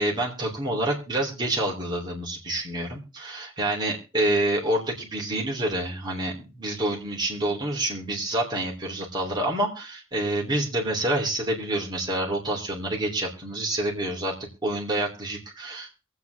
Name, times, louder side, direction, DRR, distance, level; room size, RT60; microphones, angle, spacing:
voice 1, 0.0-14.3 14.6-16.1, right 1 dB, 20° right, -2 dB, 3.3 m, -27 dB
23.0 x 8.2 x 3.5 m, 0.32 s
head